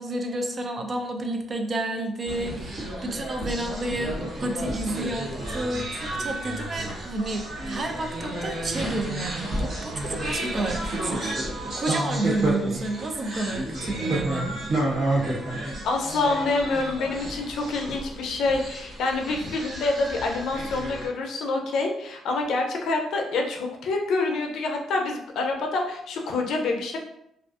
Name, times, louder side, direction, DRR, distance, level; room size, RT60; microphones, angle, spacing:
voice 1, 0.0-14.8, right 2 dB, 40° right, 3 dB, 0.4 m, -30 dB
sound 1, 2.3-21.1, right 1 dB, 60° right, 1.2 m, -31 dB
voice 2, 15.8-27.0, left 3 dB, 75° left, 2 dB, 0.5 m, -27 dB
2.4 x 2.4 x 2.4 m, 0.77 s
cardioid pair, 90°, 0 cm